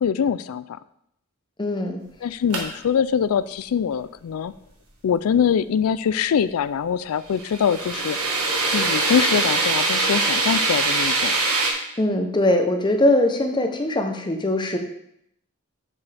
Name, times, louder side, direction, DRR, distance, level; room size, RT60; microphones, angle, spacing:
voice 1, 0.0-0.6 2.2-4.5 5.0-8.2 8.7-11.3, left 7 dB, 80° left, 16 dB, 0.3 m, -23 dB
voice 2, 1.6-2.0 12.0-14.8, left 1 dB, 20° left, 5 dB, 0.8 m, -21 dB
sound 1, 2.5-2.6 7.4-11.7, right 3 dB, 80° right, 1.5 m, -22 dB
7.1 x 6.9 x 3.4 m, 0.74 s
head